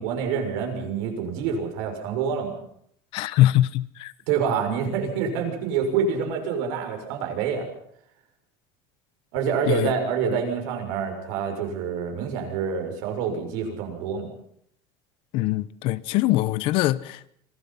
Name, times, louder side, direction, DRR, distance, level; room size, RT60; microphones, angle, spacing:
voice 1, 0.0-2.6 4.3-7.7 9.3-14.3, right 6 dB, 85° right, 6.7 m, -27 dB
voice 2, 3.1-4.1 9.7-9.9 15.3-17.3, left 15 dB, 55° left, 0.9 m, -22 dB
26.0 x 18.0 x 5.9 m
cardioid pair, 175°, 11 cm